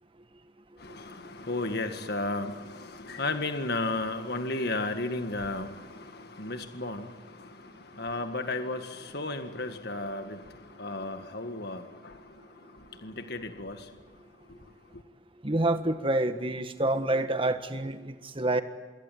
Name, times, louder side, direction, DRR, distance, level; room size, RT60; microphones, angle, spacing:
voice 1, 0.8-14.2 14.5-14.7 14.9-15.0, left 2 dB, 60° left, 1.8 m, -34 dB
voice 2, 15.4-18.6, right 2 dB, 30° right, 1.5 m, -27 dB
26.5 x 22.5 x 9.3 m
head